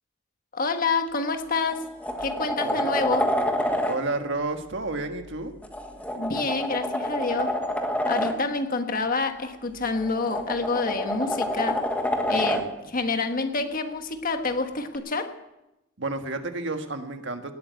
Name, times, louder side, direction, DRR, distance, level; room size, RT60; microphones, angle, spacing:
voice 1, 0.5-1.8 2.2-3.3 6.1-7.6 8.1-11.8 12.3-15.3, left 3 dB, 45° left, 6 dB, 1.4 m, -28 dB
sound 1, 1.1-1.2 1.7-4.0 5.6-8.4 9.8-12.7 14.9-15.0, left 1 dB, 5° left, 1.4 m, -27 dB
voice 2, 3.9-5.5 12.2-12.9 16.0-17.5, right 2 dB, 65° right, 6 dB, 1.6 m, -31 dB
18.5 x 8.9 x 8.2 m, 0.93 s
head